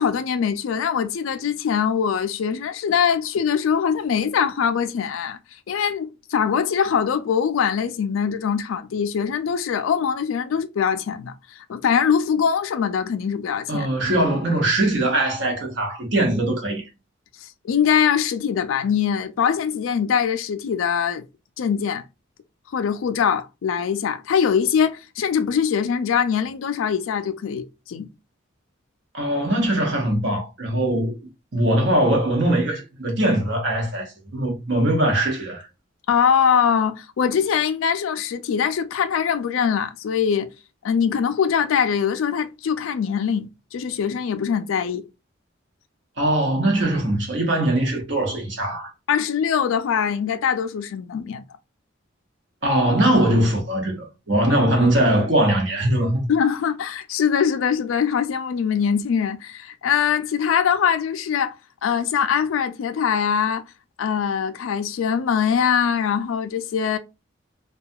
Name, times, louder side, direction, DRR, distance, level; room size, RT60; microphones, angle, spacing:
voice 1, 0.0-5.4 5.7-13.9 17.4-21.2 21.6-22.0 22.7-28.1 36.1-40.5 40.8-45.0 49.1-51.4 56.3-61.6 61.8-63.6 64.0-67.0, left 7 dB, 85° left, 0.4 m, -22 dB
voice 2, 13.7-16.8 29.1-31.1 31.5-35.7 46.2-48.9 52.6-56.3, right 1 dB, 65° right, 0.9 m, -21 dB
2.3 x 2.3 x 2.6 m
head